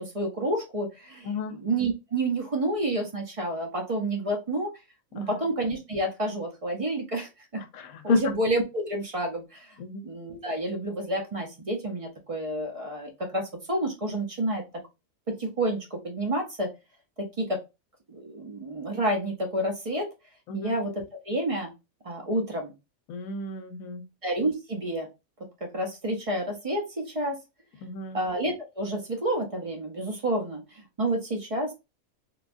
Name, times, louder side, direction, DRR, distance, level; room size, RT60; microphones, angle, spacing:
voice 1, 0.0-4.7 5.1-7.6 8.0-9.7 10.0-14.6 15.3-16.7 17.2-17.6 18.1-20.1 20.5-21.7 22.0-22.7 24.2-25.1 25.6-27.4 28.1-31.7, right 1 dB, 45° right, 0.4 m, -29 dB
voice 2, 1.3-1.6 5.2-5.3 7.7-8.2 9.8-10.0 20.5-20.7 23.1-24.0 27.8-28.2, left 4 dB, 85° left, 1.0 m, -31 dB
3.2 x 2.2 x 2.5 m
omnidirectional pair, 1.4 m